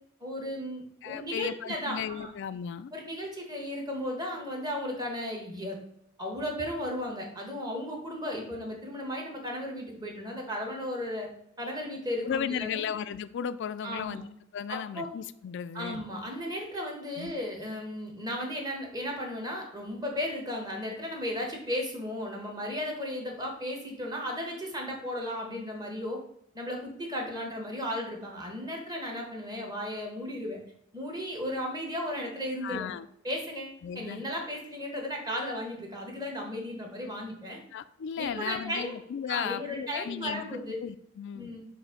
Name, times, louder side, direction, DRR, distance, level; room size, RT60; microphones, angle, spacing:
voice 1, 0.2-2.3 2.9-5.8 6.2-11.3 11.6-12.8 13.8-14.2 14.7-15.1 15.7-26.2 26.5-30.6 30.9-32.9 33.2-37.6 38.2-39.0 39.3-40.7 41.3-41.7, left 1 dB, 20° right, 1 dB, 1.3 m, -35 dB
voice 2, 1.0-2.9 12.2-14.3 14.5-16.0 17.2-17.3 32.6-33.1 33.8-34.2 37.7-41.5, left 8 dB, 60° left, 14 dB, 0.3 m, -35 dB
7.3 x 2.7 x 5.0 m, 0.73 s
head